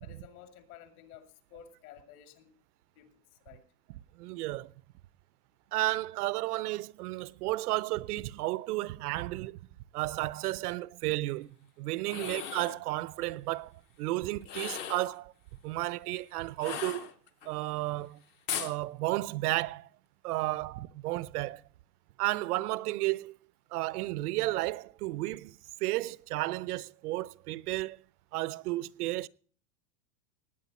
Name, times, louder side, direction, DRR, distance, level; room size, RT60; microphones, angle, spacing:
voice 1, 0.0-2.5 2.9-3.1 3.4-3.6 12.1-12.4, left 10 dB, 55° left, 2.6 m, -52 dB
voice 2, 4.2-4.7 5.7-9.6 9.9-15.3 15.6-17.1 17.4-18.2 18.6-19.9 20.2-21.6 22.2-23.3 23.7-28.0 28.3-29.3, right 18 dB, 65° right, 0.6 m, -33 dB
sound 1, 12.0-12.8 14.4-15.1 16.6-17.5 18.5-18.8, left 8 dB, 25° left, 0.5 m, -37 dB
19.0 x 8.8 x 4.1 m
supercardioid pair, 160°, 50 cm